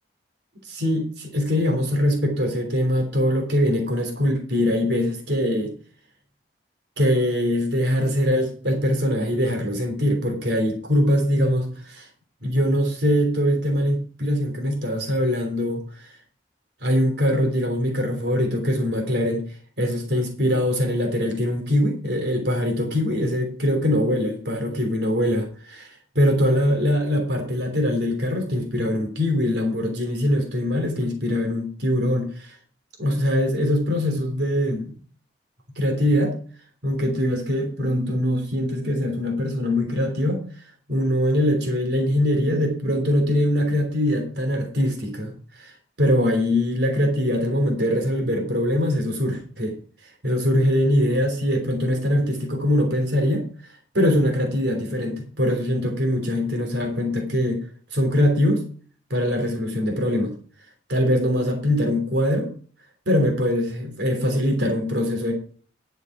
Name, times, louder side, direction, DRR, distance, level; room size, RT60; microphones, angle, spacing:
voice 1, 0.7-5.7 7.0-12.1 12.4-16.1 16.8-19.4 19.8-25.4 25.7-25.9 26.1-32.5 33.0-34.9 35.8-36.3 36.8-40.4 40.9-45.3 45.6-45.7 46.0-49.7 50.2-53.4 53.9-57.6 57.9-58.6 59.1-60.3 60.9-62.5 63.1-65.3, equal, 65° right, 3 dB, 3.3 m, -22 dB
10.5 x 7.9 x 4.8 m, 0.41 s
head